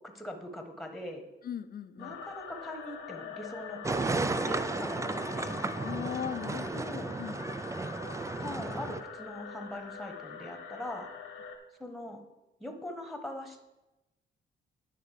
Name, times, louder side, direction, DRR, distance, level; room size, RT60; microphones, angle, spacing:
voice 1, 0.1-1.2 2.0-3.8 4.2-5.6 6.6-7.1 8.4-11.1 11.8-12.2 12.6-13.6, left 1 dB, ahead, 4 dB, 1.3 m, -41 dB
voice 2, 1.4-2.2 5.8-7.4, left 8 dB, 50° left, 12 dB, 0.6 m, -38 dB
sound 1, 2.0-11.6, left 6 dB, 85° left, 1.3 m, -44 dB
sound 2, 3.8-9.0, right 3 dB, 15° right, 0.4 m, -34 dB
9.7 x 3.9 x 6.5 m, 0.99 s
cardioid pair, 90°, 20 cm